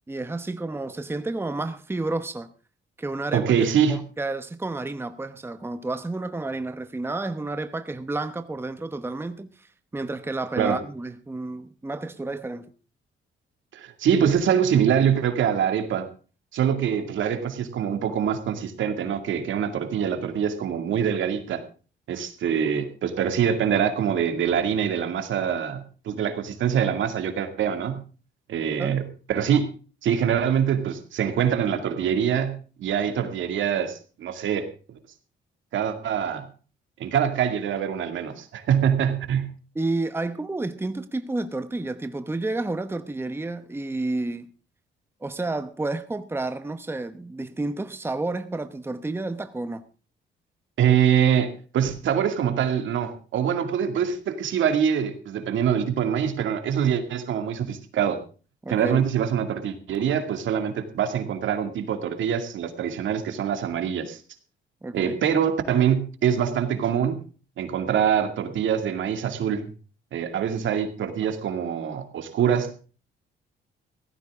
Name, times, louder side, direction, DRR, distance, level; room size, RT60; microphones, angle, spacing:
voice 1, 0.1-2.5 3.0-3.5 3.9-12.7 28.8-29.0 39.7-44.5 45.2-49.8 58.6-59.0 64.8-65.2, right 2 dB, 10° right, 1.0 m, -30 dB
voice 2, 3.3-4.0 10.6-10.8 13.7-16.1 16.5-21.6 22.1-28.0 28.5-29.0 29.3-29.7 30.0-34.7 35.7-36.5 37.0-39.5 50.8-58.2 58.7-64.2 64.9-67.2 67.6-69.7 70.1-72.7, right 8 dB, 75° right, 2.3 m, -24 dB
16.5 x 14.5 x 3.6 m
cardioid pair, 90°, 20 cm